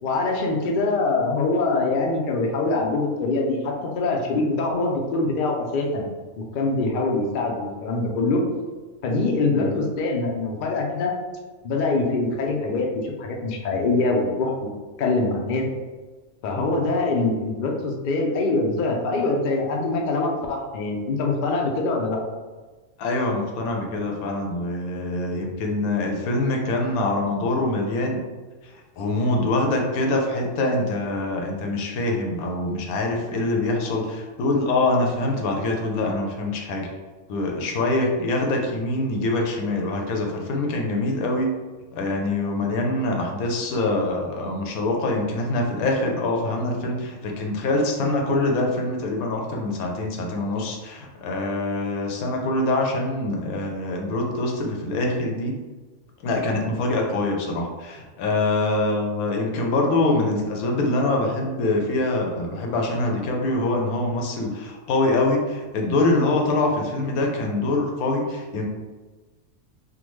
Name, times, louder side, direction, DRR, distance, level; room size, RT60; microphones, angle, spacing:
voice 1, 0.0-6.1 6.4-8.4 9.0-11.1 11.6-14.7 15.0-15.7 16.4-22.2, left 3 dB, 65° left, 0 dB, 0.5 m, -24 dB
voice 2, 23.0-28.2 28.6-36.9 37.3-41.5 41.9-55.5 56.2-68.6, left 2 dB, 80° left, 1 dB, 1.1 m, -24 dB
3.5 x 2.1 x 3.1 m, 1.3 s
omnidirectional pair, 1.5 m